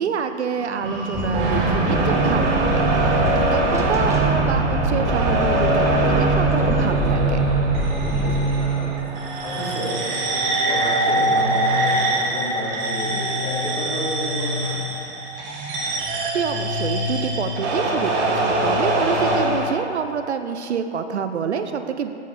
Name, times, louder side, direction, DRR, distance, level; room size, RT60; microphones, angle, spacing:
voice 1, 0.0-7.5 16.3-22.1, right 6 dB, 70° right, 8 dB, 0.6 m, -27 dB
sound 1, 0.6-19.7, right 2 dB, 40° right, 1.5 m, -23 dB
Wind, 1.1-8.4, equal, 10° right, 0.7 m, -24 dB
voice 2, 8.1-8.9 9.4-14.8, equal, 15° left, -6 dB, 2.1 m, -32 dB
7.6 x 7.4 x 4.1 m, 2.6 s
figure-of-eight pair, 110°, 35 cm